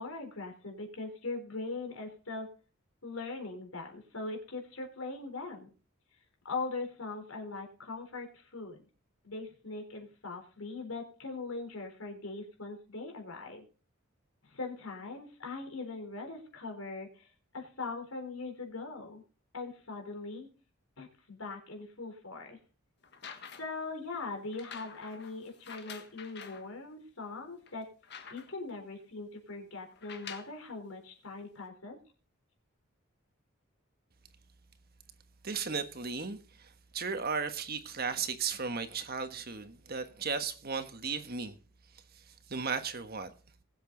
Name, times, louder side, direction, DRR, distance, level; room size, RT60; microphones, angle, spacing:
voice 1, 0.0-2.5 3.0-5.7 6.4-8.8 9.2-13.6 14.4-17.3 17.5-19.2 19.5-20.5 21.0-22.6 23.6-27.9 28.3-32.0, left 3 dB, 75° left, 3.9 m, -41 dB
sound 1, 23.0-23.8 24.5-26.7 27.2-27.3 27.7-28.7 29.9-30.6 31.6-31.7, left 6 dB, 50° left, 1.6 m, -48 dB
voice 2, 35.4-41.6 42.1-43.3, right 5 dB, 45° right, 1.4 m, -36 dB
20.5 x 7.9 x 3.9 m
head